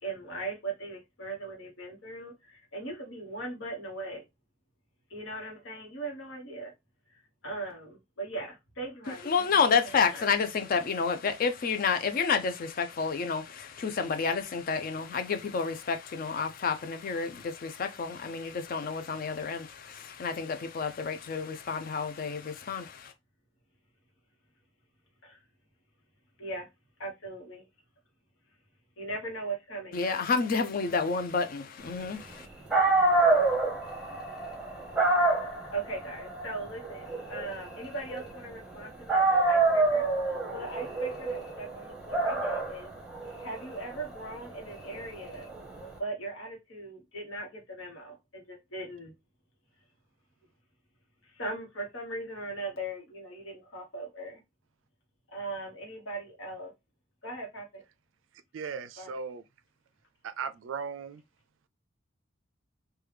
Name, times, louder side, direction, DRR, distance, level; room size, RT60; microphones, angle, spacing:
voice 1, 0.0-4.2 5.1-6.7 7.1-9.5 9.8-10.2 25.2-25.4 26.4-26.7 27.0-27.6 29.0-30.2 33.7-34.1 35.7-40.1 40.5-42.9 43.4-45.5 46.0-49.1 51.3-54.4 55.3-56.7 57.2-57.8 59.0-59.2, right 2 dB, 80° left, 1.0 m, -39 dB
voice 2, 9.1-23.1 29.9-32.5, left 5 dB, 45° left, 0.4 m, -30 dB
Dog, 32.4-32.5 32.7-38.7 39.1-45.9, right 3 dB, 5° right, 0.8 m, -27 dB
voice 3, 58.5-59.4 60.2-61.2, right 6 dB, 75° right, 0.4 m, -37 dB
3.1 x 2.2 x 3.2 m
head